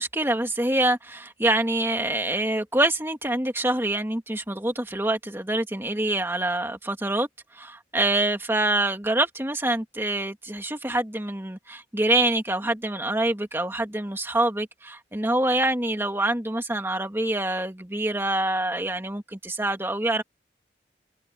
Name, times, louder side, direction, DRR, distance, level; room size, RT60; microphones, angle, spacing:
voice 1, 0.0-7.3 7.5-20.2, right 1 dB, 15° right, 2.0 m, -25 dB
head